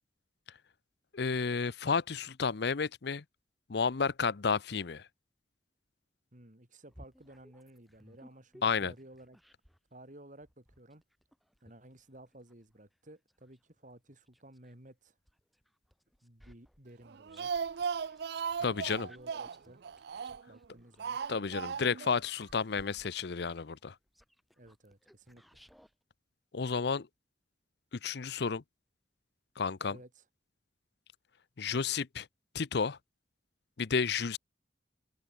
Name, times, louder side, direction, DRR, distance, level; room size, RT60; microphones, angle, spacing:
voice 1, 1.1-3.2 3.7-5.1 8.6-8.9 18.6-19.1 21.3-23.9 26.5-27.1 28.0-28.6 29.6-30.0 31.6-32.3 32.5-33.0 33.8-34.4, left 5 dB, 65° left, 0.7 m, -31 dB
voice 2, 6.3-9.4 9.9-11.0 11.6-15.2 16.2-17.5 18.9-19.8 20.5-21.2 24.6-25.6 29.9-30.2, right 1 dB, 45° right, 4.3 m, -55 dB
sound 1, 6.9-9.9 10.4-14.8 15.3-25.9, equal, ahead, 4.6 m, -61 dB
Speech, 17.1-20.6 21.0-22.1 22.4-22.5 22.8-22.9, right 6 dB, 60° right, 0.4 m, -37 dB
open air
head